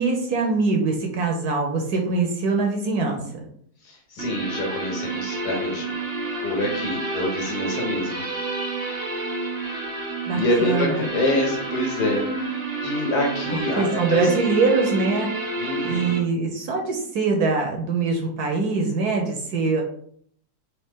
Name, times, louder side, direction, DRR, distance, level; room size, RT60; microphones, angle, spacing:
voice 1, 0.0-3.4 10.3-10.9 13.5-15.3 15.8-19.8, right 4 dB, 65° right, 2 dB, 1.1 m, -23 dB
voice 2, 3.8-5.9 6.4-8.4 10.3-12.3 12.8-14.4 15.6-16.2, left 1 dB, 60° left, 0 dB, 1.7 m, -26 dB
sound 1, 4.2-16.2, right 2 dB, 50° right, 0.7 m, -29 dB
4.2 x 3.2 x 3.6 m, 0.62 s
omnidirectional pair, 2.0 m